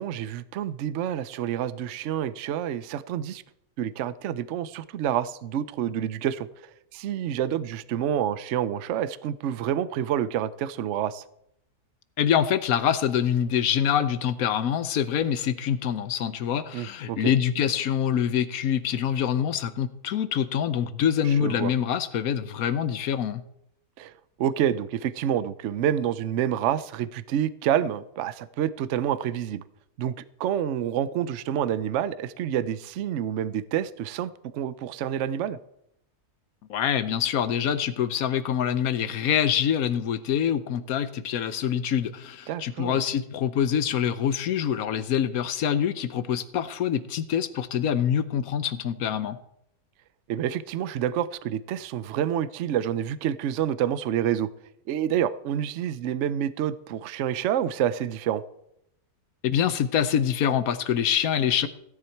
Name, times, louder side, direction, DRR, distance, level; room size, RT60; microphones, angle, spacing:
voice 1, 0.0-3.4 3.8-6.5 6.9-11.2 16.7-17.3 21.2-21.7 24.0-24.1 24.4-29.6 30.0-30.1 30.4-35.6 42.5-43.0 50.3-54.5 54.9-58.4, right 10 dB, 65° right, 16 dB, 0.8 m, -28 dB
voice 2, 12.2-23.4 36.7-49.4 59.4-61.7, left 9 dB, 75° left, 13 dB, 1.2 m, -25 dB
15.5 x 10.0 x 4.5 m, 0.77 s
omnidirectional pair, 1.6 m